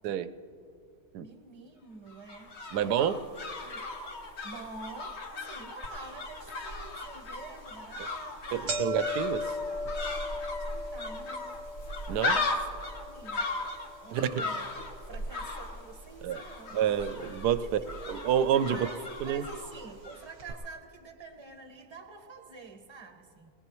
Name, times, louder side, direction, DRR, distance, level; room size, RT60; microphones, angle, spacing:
voice 1, 1.2-3.3 3.6-8.8 10.6-11.7 12.2-13.5 14.0-14.7 15.0-17.2 17.6-17.9 18.7-23.5, right 4 dB, 20° right, 3 dB, 1.1 m, -48 dB
sound 1, 2.1-20.3 20.5-20.6, left 2 dB, 45° left, 1.3 m, -37 dB
voice 2, 2.7-3.2 8.5-9.5 12.1-12.4 14.1-14.4 16.2-16.4 16.7-17.7 18.1-18.9 19.2-19.4, right 9 dB, 90° right, 12 dB, 1.2 m, -28 dB
sound 2, 5.8-5.9 6.5-6.6 7.4-7.6 7.9-8.0 8.3-16.5 16.8-17.5 18.3-18.4 19.4-19.5 19.7-19.8 20.4-20.5, left 2 dB, 45° right, 1.2 m, -39 dB
21.0 x 19.5 x 3.1 m, 2.4 s
omnidirectional pair, 1.7 m